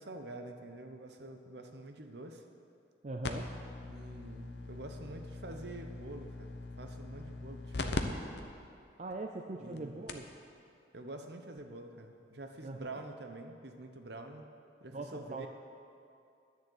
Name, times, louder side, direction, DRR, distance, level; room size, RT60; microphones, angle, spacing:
voice 1, 0.0-2.4 3.9-8.2 9.6-10.0 10.9-14.5 14.8-15.5, right 2 dB, 60° right, 5 dB, 0.9 m, -47 dB
voice 2, 3.0-3.5 9.0-10.2 12.6-12.8 14.9-15.5, right 2 dB, 40° right, 2 dB, 0.5 m, -41 dB
sound 1, 3.2-8.0 8.4-8.5 9.1-9.2 9.8-9.9 10.1-10.3 11.6-11.7, left 3 dB, 60° left, 0.7 m, -41 dB
10.5 x 7.1 x 7.9 m, 2.5 s
head